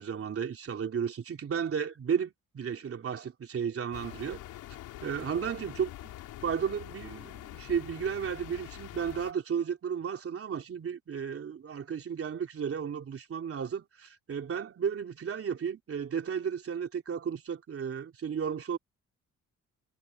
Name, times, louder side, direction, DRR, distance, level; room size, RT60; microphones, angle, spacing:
voice 1, 0.0-4.4 5.0-6.1 6.4-18.8, right 7 dB, 50° right, 3.3 m, -33 dB
sound 1, 3.9-9.3, left 14 dB, 90° left, 4.0 m, -45 dB
cardioid pair, 90°, 30 cm